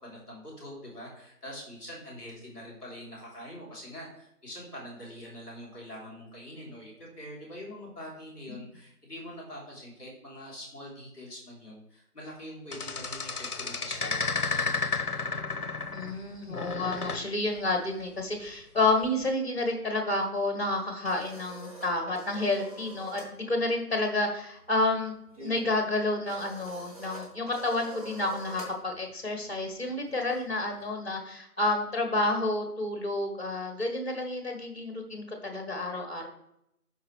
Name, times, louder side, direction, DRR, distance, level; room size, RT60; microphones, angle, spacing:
voice 1, 0.0-14.2, equal, 5° left, -14 dB, 2.8 m, -44 dB
sound 1, 12.7-16.2 16.5-17.3 19.0-19.3, left 4 dB, 70° left, 0.9 m, -32 dB
voice 2, 15.9-25.1 25.4-36.3, left 2 dB, 40° left, 4 dB, 1.9 m, -30 dB
sound 2, 20.7-23.4 23.6-23.9 24.2-30.9, right 2 dB, 25° right, 1.6 m, -47 dB
12.5 x 4.9 x 3.4 m, 0.78 s
figure-of-eight pair, 165°, 46 cm